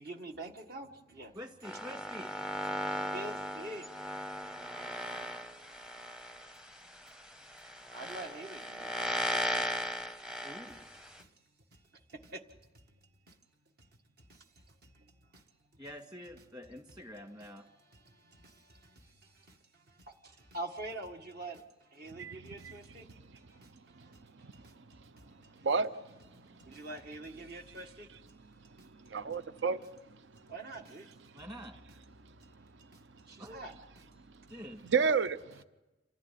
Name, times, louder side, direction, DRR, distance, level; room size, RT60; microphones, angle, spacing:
voice 1, 0.0-1.3 1.7-1.8 2.6-3.9 4.9-5.1 6.7-6.8 7.6-9.7 10.7-11.3 11.7-12.4 13.3-13.4 14.3-14.5 14.8-15.4 17.4-24.7 25.2-25.7 26.3-28.1 28.8-28.9 30.5-31.1 32.9-33.7 34.8-34.9, right 2 dB, 55° right, 1.7 m, -47 dB
voice 2, 1.3-2.3 10.4-10.8 15.8-17.7 31.3-31.7 33.4-33.6 34.5-34.8, equal, 25° right, 2.0 m, -46 dB
sound 1, 1.6-11.2, equal, 5° right, 0.7 m, -37 dB
voice 3, 22.1-22.7 24.0-24.1 24.4-24.7 25.6-25.9 26.7-26.8 28.8-29.8 30.1-30.2 32.6-32.7 34.8-35.6, right 5 dB, 75° right, 0.7 m, -32 dB
27.5 x 15.5 x 9.3 m
head